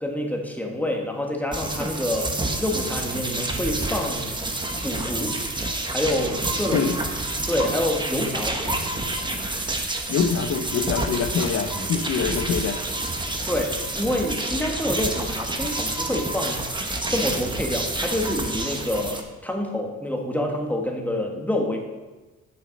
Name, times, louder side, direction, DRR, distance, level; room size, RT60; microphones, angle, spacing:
voice 1, 0.0-4.3 4.8-5.4 5.9-6.9 7.5-8.6 13.5-16.7 17.1-21.8, left 1 dB, 5° left, 1 dB, 1.6 m, -27 dB
sound 1, 1.5-19.2, right 2 dB, 15° right, 1.1 m, -28 dB
voice 2, 10.1-12.8, left 6 dB, 55° left, 4 dB, 0.8 m, -24 dB
8.7 x 6.7 x 5.2 m, 1.2 s
cardioid pair, 90°, 30 cm